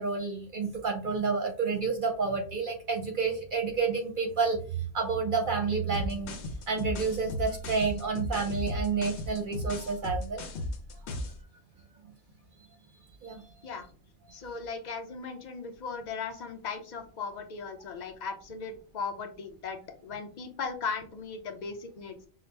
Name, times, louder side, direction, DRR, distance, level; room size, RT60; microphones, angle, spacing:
voice 1, 0.0-10.4 13.2-13.4, right 5 dB, 55° right, 3 dB, 0.7 m, -30 dB
sound 1, 5.9-11.4, left 2 dB, 75° left, 1.0 m, -35 dB
voice 2, 14.3-22.3, left 5 dB, 45° left, 4 dB, 0.7 m, -37 dB
5.9 x 2.0 x 3.2 m, 0.40 s
omnidirectional pair, 1.2 m